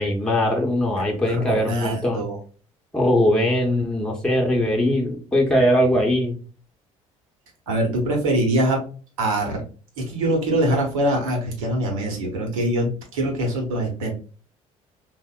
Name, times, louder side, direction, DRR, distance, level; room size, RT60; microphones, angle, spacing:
voice 1, 0.0-2.2 2.9-6.3, left 1 dB, 5° left, 0 dB, 0.8 m, -21 dB
voice 2, 1.3-2.4 7.7-8.8 9.2-9.6 10.0-14.1, right 1 dB, 75° right, 1 dB, 0.8 m, -23 dB
3.3 x 2.1 x 2.3 m, 0.38 s
hypercardioid pair, 55°, 18 cm